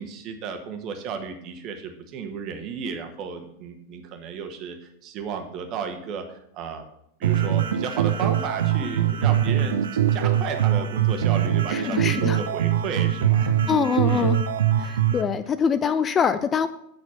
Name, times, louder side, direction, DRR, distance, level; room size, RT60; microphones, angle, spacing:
voice 1, 0.0-6.8 7.2-9.9 10.1-13.7 14.0-14.3, right 6 dB, 35° right, 6 dB, 1.4 m, -33 dB
sound 1, 7.2-15.2, right 10 dB, 65° right, 0.7 m, -22 dB
voice 2, 11.7-12.4 13.7-14.4 14.8-16.7, left 7 dB, 25° left, 12 dB, 0.4 m, -24 dB
8.7 x 6.0 x 5.7 m, 0.77 s
figure-of-eight pair, 90°, 0 cm